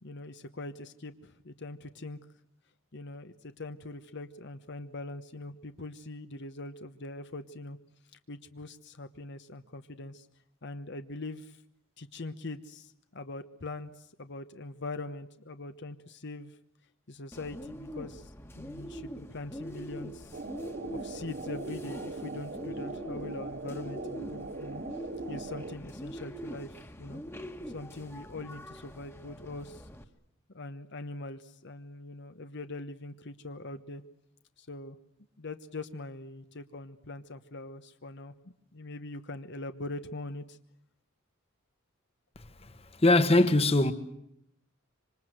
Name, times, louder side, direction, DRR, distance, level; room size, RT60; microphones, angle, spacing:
voice 1, 0.0-2.2 2.9-7.8 8.3-10.3 10.6-11.6 12.0-16.6 17.1-20.4 20.9-24.8 25.3-27.2 27.7-29.9 30.5-34.0 34.6-35.0 35.4-38.3 38.7-40.6, left 2 dB, 60° left, 1.1 m, -42 dB
Bird, 17.3-30.0, equal, 10° left, 1.6 m, -43 dB
sound 1, 20.3-25.7, right 3 dB, 50° right, 1.2 m, -40 dB
voice 2, 42.3-43.9, left 2 dB, 30° left, 1.4 m, -23 dB
26.0 x 25.5 x 7.9 m
head